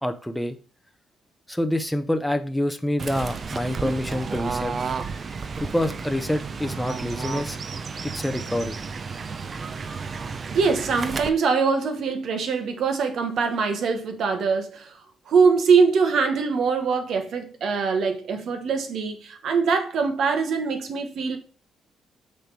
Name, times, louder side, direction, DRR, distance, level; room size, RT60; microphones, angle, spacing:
voice 1, 0.0-0.6 1.5-4.7 5.6-7.6 8.0-8.8, left 1 dB, 5° left, 0.7 m, -26 dB
Fowl / Bird, 3.0-11.3, right 5 dB, 40° right, 0.6 m, -32 dB
voice 2, 10.5-14.9 15.3-21.4, right 5 dB, 70° right, 1.1 m, -23 dB
6.6 x 3.4 x 5.9 m
cardioid pair, 90°, 0 cm